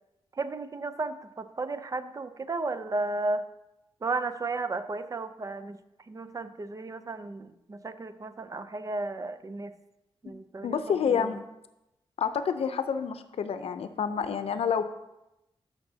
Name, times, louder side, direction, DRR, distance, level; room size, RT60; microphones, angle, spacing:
voice 1, 0.3-3.4 4.0-5.8 6.1-9.7 10.2-11.4, right 3 dB, 35° right, 11 dB, 0.5 m, -34 dB
voice 2, 10.6-11.4 12.2-14.8, left 7 dB, 80° left, 10 dB, 0.6 m, -28 dB
13.5 x 5.9 x 2.8 m, 0.92 s
wide cardioid pair, 95°, 10 cm